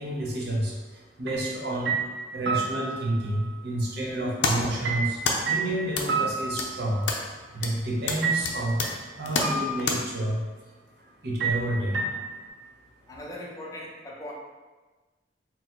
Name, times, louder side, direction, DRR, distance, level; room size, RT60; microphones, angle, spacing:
voice 1, 0.0-2.0 2.3-7.1 7.5-8.9 9.2-10.5 11.0-12.0, right 1 dB, 65° right, -3 dB, 0.9 m, -30 dB
sound 1, 1.3-1.5 1.9-3.2 4.8-7.2 8.2-9.0 9.4-10.2 11.4-12.5, right 4 dB, 80° right, 0.5 m, -30 dB
sound 2, 4.1-10.0, left 3 dB, 75° left, 0.5 m, -31 dB
voice 2, 13.1-14.3, left 1 dB, 20° left, -3 dB, 0.5 m, -39 dB
3.8 x 2.2 x 4.4 m, 1.2 s
head